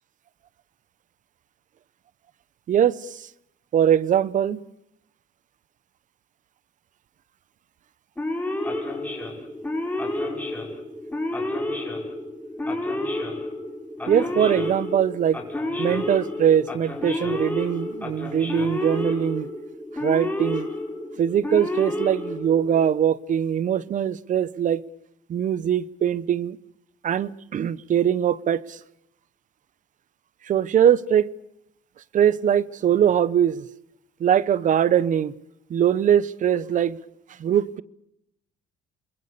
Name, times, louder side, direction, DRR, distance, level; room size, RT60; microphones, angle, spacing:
voice 1, 2.7-3.2 3.7-4.6 14.1-15.4 15.8-19.5 20.0-20.7 21.2-24.8 25.3-26.6 27.0-28.8 30.5-31.3 32.1-33.6 34.2-35.3 35.7-37.0 37.4-37.8, right 9 dB, 50° right, 1.0 m, -22 dB
Male speech man speaking / Siren, 8.2-22.9, left 1 dB, 10° left, 5.5 m, -30 dB
28.0 x 22.0 x 6.9 m
cardioid pair, 110°, 17 cm